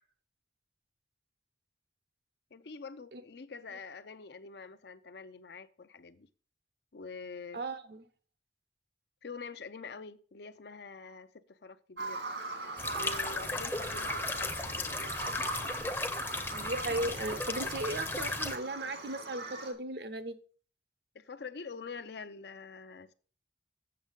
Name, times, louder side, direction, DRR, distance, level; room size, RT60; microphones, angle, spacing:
voice 1, 2.5-6.3 6.9-7.6 9.2-12.2 12.9-15.2 21.1-23.1, left 4 dB, 70° left, 0.6 m, -46 dB
voice 2, 7.5-8.1 16.5-20.3, right 2 dB, 65° right, 0.8 m, -36 dB
Bird vocalization bird call bird song, 12.0-19.7, right 3 dB, 80° right, 2.6 m, -41 dB
sound 1, 12.8-18.6, left 2 dB, 15° left, 0.6 m, -36 dB
7.7 x 6.5 x 5.2 m
head